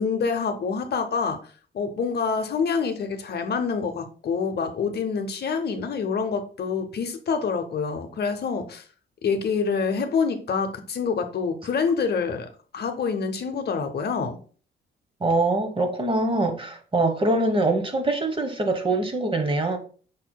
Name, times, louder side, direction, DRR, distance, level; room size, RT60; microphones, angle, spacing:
voice 1, 0.0-8.8 9.2-12.5 12.7-14.4, left 5 dB, 55° left, 0.7 m, -26 dB
voice 2, 15.2-19.8, right 2 dB, 25° right, 0.9 m, -23 dB
5.1 x 4.3 x 2.2 m
cardioid pair, 70°, 20 cm